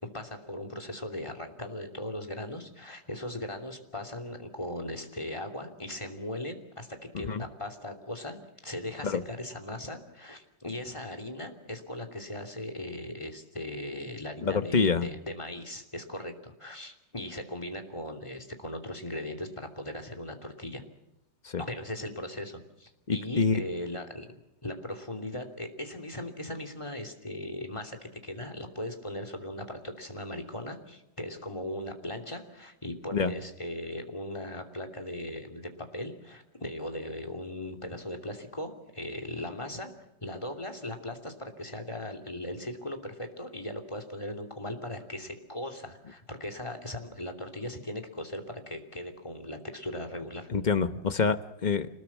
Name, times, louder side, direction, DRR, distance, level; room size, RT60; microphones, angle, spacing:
voice 1, 0.0-8.4 8.6-20.8 21.6-24.3 24.6-39.9 40.2-50.5, left 1 dB, 15° left, 3 dB, 2.9 m, -38 dB
voice 2, 14.4-15.1 21.4-21.6 23.1-23.6 33.1-33.3 50.5-51.9, left 5 dB, 35° left, 10 dB, 0.7 m, -26 dB
27.0 x 20.5 x 7.4 m, 0.87 s
omnidirectional pair, 2.0 m